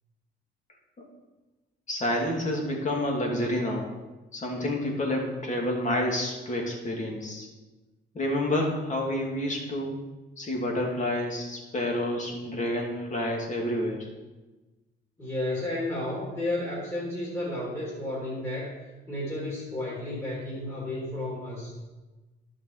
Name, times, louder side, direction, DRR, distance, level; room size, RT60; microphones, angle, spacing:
voice 1, 1.9-3.9 4.3-7.5 8.1-10.0 10.4-14.0, left 1 dB, 40° left, 0 dB, 2.5 m, -29 dB
voice 2, 15.2-18.8 19.1-21.8, left 1 dB, 15° left, -7 dB, 3.4 m, -32 dB
12.0 x 5.4 x 4.9 m, 1.2 s
cardioid pair, 90°, 20 cm